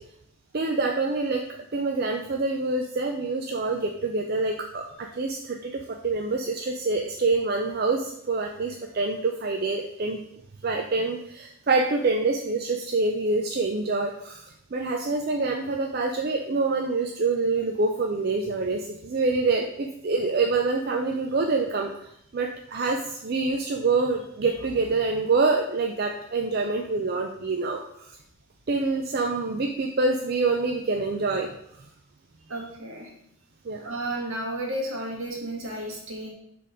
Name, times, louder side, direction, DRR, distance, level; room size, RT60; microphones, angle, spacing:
voice 1, 0.5-1.4 1.7-10.2 10.6-28.1 28.7-31.5 33.6-33.9, right 3 dB, 45° right, 2 dB, 0.4 m, -26 dB
voice 2, 32.5-33.1 33.8-36.3, right 1 dB, 70° right, 0 dB, 1.6 m, -32 dB
6.7 x 3.6 x 5.0 m, 0.74 s
head